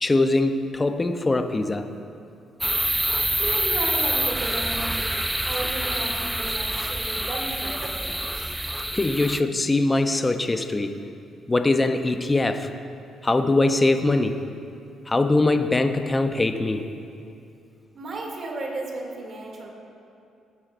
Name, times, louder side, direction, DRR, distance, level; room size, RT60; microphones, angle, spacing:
voice 1, 0.0-1.9 8.9-11.0 11.5-12.7 13.2-14.4 15.1-16.9, left 2 dB, 20° left, 8 dB, 0.7 m, -22 dB
sound 1, 2.6-9.4, right 1 dB, 5° right, 0.4 m, -26 dB
voice 2, 3.0-8.5 17.9-19.7, right 2 dB, 50° right, -1 dB, 2.6 m, -34 dB
19.0 x 10.5 x 2.6 m, 2.6 s
cardioid pair, 90°, 0 cm